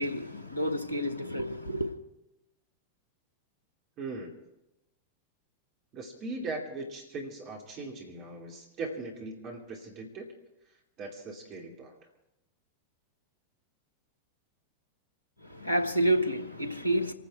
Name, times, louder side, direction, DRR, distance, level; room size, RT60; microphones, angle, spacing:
voice 1, 0.0-1.9 15.4-17.1, right 1 dB, 80° left, 1.4 m, -29 dB
voice 2, 4.0-4.4 5.9-10.3 11.0-12.0, right 3 dB, 35° right, 2.7 m, -39 dB
26.5 x 10.0 x 4.7 m
figure-of-eight pair, 90°, 0 cm